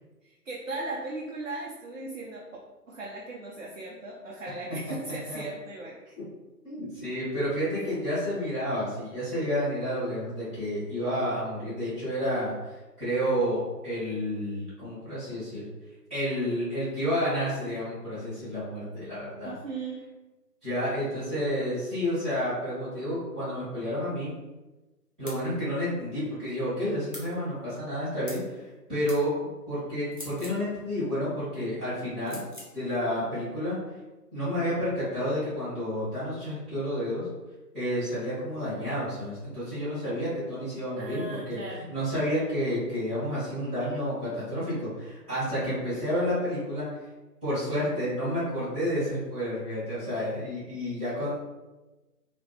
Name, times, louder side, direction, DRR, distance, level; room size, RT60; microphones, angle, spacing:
voice 1, 0.2-2.4 2.9-6.0 19.4-20.0 41.0-41.8, right 2 dB, 55° right, -3 dB, 0.7 m, -37 dB
voice 2, 6.6-15.7 16.1-19.5 20.6-24.3 25.2-28.6 28.9-32.4 32.7-33.8 34.3-37.3 37.7-46.9 47.4-51.3, equal, 5° right, -21 dB, 0.9 m, -30 dB
sound 1, 25.3-25.4 27.1-27.3 28.3-28.5 29.1-29.2 30.1-30.6 32.3-32.7, equal, 35° left, 0.6 m, -42 dB
3.0 x 2.7 x 3.4 m, 1.1 s
figure-of-eight pair, 155°, 49 cm